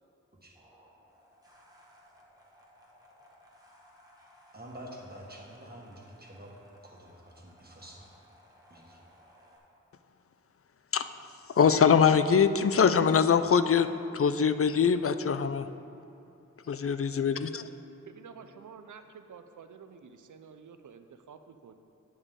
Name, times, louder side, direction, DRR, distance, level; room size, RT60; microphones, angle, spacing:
sound 1, 0.5-9.6, equal, 10° right, 1.6 m, -60 dB
voice 1, 4.5-6.5 6.8-8.0 8.7-9.0, right 1 dB, 30° right, -2 dB, 1.5 m, -47 dB
voice 2, 10.9-15.7 16.6-17.7, left 6 dB, 50° left, 11 dB, 0.4 m, -24 dB
voice 3, 18.1-21.7, right 6 dB, 80° right, 8 dB, 0.5 m, -50 dB
9.7 x 7.1 x 3.7 m, 2.7 s
wide cardioid pair, 40°, 30 cm